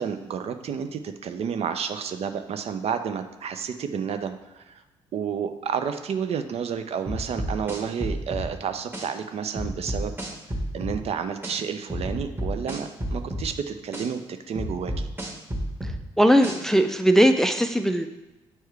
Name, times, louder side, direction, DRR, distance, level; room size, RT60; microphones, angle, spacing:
voice 1, 0.0-4.8 5.1-10.2 10.7-14.2 14.5-15.1, right 7 dB, 45° right, 8 dB, 0.6 m, -30 dB
sound 1, 7.1-8.5 8.9-9.1 9.6-11.0 11.4-11.6 11.9-13.5 13.9-14.1 14.6-16.0 16.4-16.6, equal, 15° right, 1.5 m, -30 dB
voice 2, 16.2-18.1, equal, 5° left, 7 dB, 0.4 m, -19 dB
8.3 x 4.6 x 3.2 m, 1.1 s
figure-of-eight pair, 45°, 14 cm